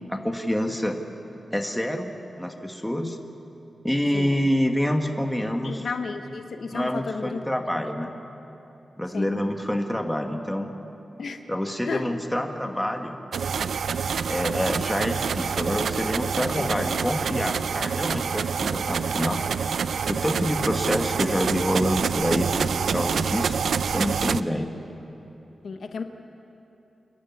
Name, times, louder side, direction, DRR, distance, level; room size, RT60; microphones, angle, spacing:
voice 1, 0.1-1.0 1.5-3.2 3.8-5.9 6.7-8.1 9.0-10.7 11.5-13.2 14.3-19.4 20.1-23.6 23.8-24.7, equal, 5° left, 4 dB, 1.4 m, -27 dB
voice 2, 5.6-7.4 9.1-9.3 11.2-11.4 11.9-12.0 16.5-16.7 25.6-26.0, left 5 dB, 70° left, 6 dB, 1.1 m, -32 dB
sound 1, 13.3-24.4, right 6 dB, 85° right, 0.4 m, -27 dB
28.0 x 11.5 x 9.5 m, 3.0 s
wide cardioid pair, 125°, 0 cm